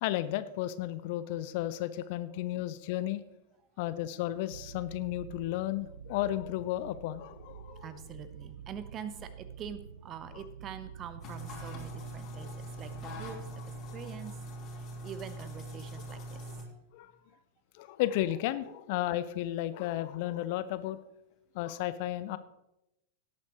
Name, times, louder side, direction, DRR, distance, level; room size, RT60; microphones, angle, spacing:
voice 1, 0.0-3.2 3.8-7.9 10.3-10.4 12.3-12.6 13.8-13.9 16.9-17.1 17.8-21.0 21.5-22.4, left 14 dB, 50° left, 14 dB, 0.5 m, -33 dB
sound 1, 4.5-13.7, right 7 dB, 65° right, 0.4 m, -48 dB
voice 2, 7.7-13.5 13.9-14.3 14.7-16.6 17.3-17.4, right 7 dB, 30° right, 12 dB, 0.9 m, -45 dB
sound 2, 11.2-16.6, right 1 dB, 35° left, 3.1 m, -42 dB
17.5 x 8.5 x 3.1 m, 0.88 s
figure-of-eight pair, 90°, 0 cm